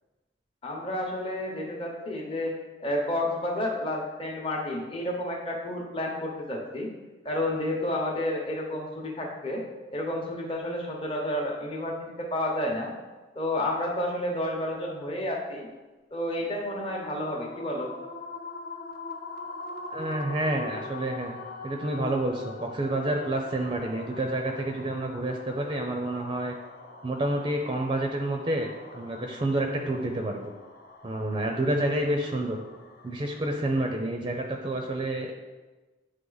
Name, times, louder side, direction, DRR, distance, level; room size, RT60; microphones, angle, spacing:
voice 1, 0.6-2.5 2.8-6.9 7.2-9.6 9.9-12.9 13.3-15.7 16.1-17.9, left 1 dB, 30° left, -2 dB, 0.9 m, -30 dB
sound 1, 16.6-33.9, left 3 dB, 55° left, 0.6 m, -43 dB
voice 2, 19.9-21.4 21.6-26.5 27.0-30.4 31.0-32.6 33.0-35.4, right 1 dB, 25° right, 3 dB, 0.5 m, -29 dB
9.0 x 3.3 x 3.9 m, 1.2 s
head